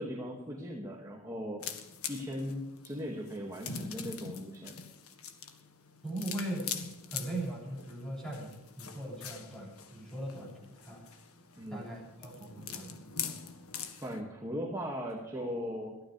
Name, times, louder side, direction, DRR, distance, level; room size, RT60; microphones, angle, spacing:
voice 1, 0.0-1.6 2.1-4.8 11.6-11.9 14.0-16.0, equal, 15° right, -2 dB, 2.3 m, -38 dB
sound 1, 1.6-14.2, left 7 dB, 85° left, 1.7 m, -43 dB
voice 2, 6.0-6.7 7.1-11.0 11.7-12.9, right 1 dB, 5° left, -2 dB, 7.4 m, -39 dB
22.0 x 15.0 x 3.5 m, 0.93 s
head